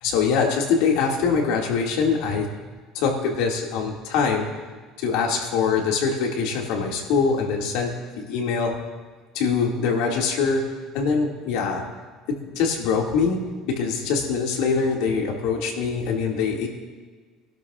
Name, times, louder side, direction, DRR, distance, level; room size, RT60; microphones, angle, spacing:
voice 1, 0.0-2.6 2.9-4.4 5.0-7.9 8.2-8.8 9.3-10.6 10.9-11.8 12.5-13.4 13.7-16.7, left 5 dB, 75° left, 0 dB, 2.2 m, -23 dB
23.5 x 12.0 x 2.5 m, 1.4 s
cardioid pair, 140°, 0 cm